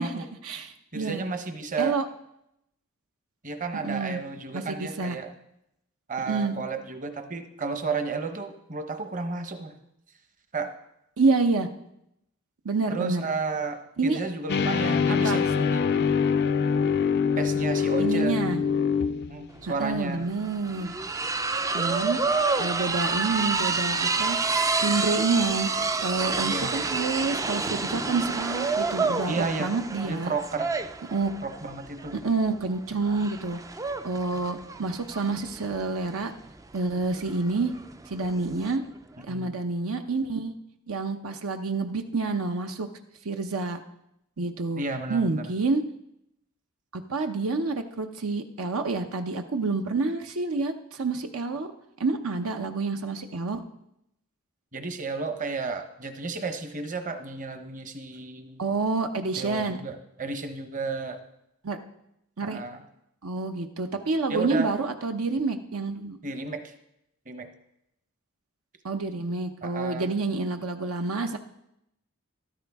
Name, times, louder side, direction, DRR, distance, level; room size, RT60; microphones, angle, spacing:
voice 1, 0.0-1.2 1.8-2.0 3.8-4.2 4.5-5.1 6.3-6.6 11.2-11.7 12.6-13.2 14.0-14.2 15.1-15.4 18.0-18.6 19.8-20.9 21.7-22.2 22.6-25.7 26.0-30.3 31.1-31.3 32.2-33.6 34.0-36.3 36.7-37.7 38.1-38.8 39.2-40.5 40.9-42.9 43.2-43.8 44.4-44.8 45.1-45.8 46.9-51.7 52.0-53.6 58.6-59.8 61.6-61.8 62.4-62.6 63.2-66.2 68.8-71.4, right 3 dB, 75° right, 5 dB, 0.8 m, -28 dB
voice 2, 0.9-2.0 3.4-5.3 6.1-9.8 10.5-10.7 12.9-16.1 17.4-18.4 19.3-20.2 26.4-26.8 29.3-29.7 30.0-30.7 31.4-32.2 39.3-39.5 44.8-45.4 54.7-58.6 59.4-61.2 62.4-62.8 64.3-64.7 66.2-66.7 67.3-67.5 69.6-70.1, right 4 dB, 35° right, 7 dB, 1.0 m, -32 dB
sound 1, 14.5-19.5, left 6 dB, 50° left, 0.4 m, -24 dB
sound 2, 19.6-19.7 19.9-38.8, right 4 dB, 15° right, 0.3 m, -29 dB
14.0 x 12.5 x 3.5 m, 0.81 s
head